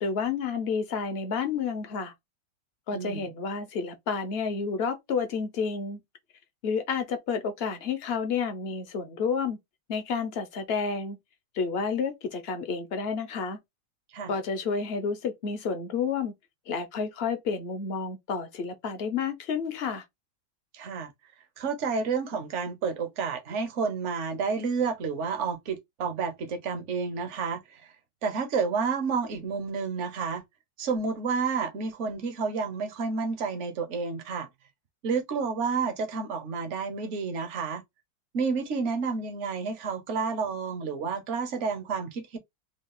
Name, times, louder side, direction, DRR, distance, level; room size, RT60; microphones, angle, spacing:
voice 1, 0.0-2.1 2.9-6.0 6.6-9.6 9.9-11.2 11.5-13.6 14.3-16.3 16.7-20.0, left 5 dB, 50° left, 0.7 m, -30 dB
voice 2, 2.9-3.3 14.1-14.3 20.7-21.1 21.6-27.9 28.2-30.4 30.8-34.5 35.0-37.8 38.3-42.4, right 5 dB, 50° right, 1.0 m, -30 dB
4.0 x 2.4 x 3.7 m
omnidirectional pair, 2.0 m